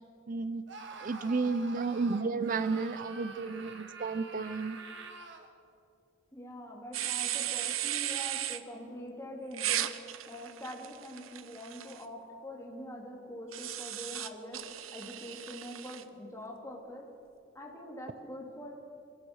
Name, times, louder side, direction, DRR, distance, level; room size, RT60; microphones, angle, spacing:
voice 1, 0.3-0.6 1.0-4.8, right 4 dB, 40° right, 14 dB, 0.5 m, -32 dB
Screaming, 0.7-5.5, right 4 dB, 60° right, 1.9 m, -47 dB
voice 2, 6.3-9.9 10.3-14.6 14.9-17.0 17.5-18.7, equal, 15° left, -2 dB, 3.5 m, -44 dB
sound 1, 6.9-8.6 9.5-12.0 13.5-16.0, right 12 dB, 85° right, 0.9 m, -36 dB
25.0 x 18.5 x 6.4 m, 2.6 s
head